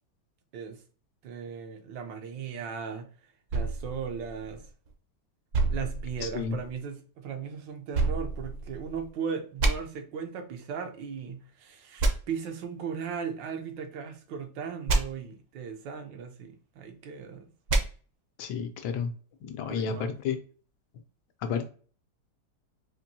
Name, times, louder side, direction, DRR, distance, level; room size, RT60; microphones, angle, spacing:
voice 1, 1.2-3.1 3.5-4.7 5.7-17.5 19.7-20.1 21.5-21.6, right 6 dB, 85° right, 1.4 m, -37 dB
sound 1, 3.5-4.9 5.5-6.8 7.9-9.1 9.6-9.7 12.0-12.1 14.9-15.0 17.7-17.8, right 3 dB, 60° right, 0.8 m, -28 dB
voice 2, 6.2-6.6 18.4-19.1 19.6-20.4 21.4-21.6, left 7 dB, 75° left, 1.1 m, -31 dB
4.4 x 2.5 x 2.7 m
omnidirectional pair, 1.9 m